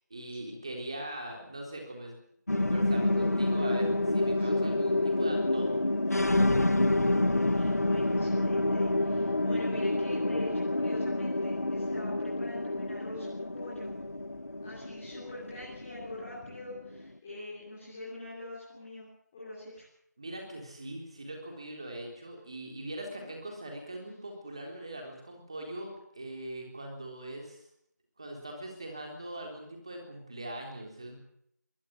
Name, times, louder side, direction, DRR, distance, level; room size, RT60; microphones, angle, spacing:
voice 1, 0.1-2.2 2.6-5.8 20.2-27.6 28.2-31.1, right 1 dB, 20° right, 2 dB, 3.9 m, -41 dB
sound 1, 2.5-17.1, left 2 dB, 60° left, 1.0 m, -28 dB
voice 2, 6.9-13.9 14.6-19.1 19.3-19.8 23.2-23.3, left 1 dB, 5° left, -11 dB, 4.2 m, -44 dB
23.0 x 19.0 x 7.7 m, 0.72 s
figure-of-eight pair, 175°, 10 cm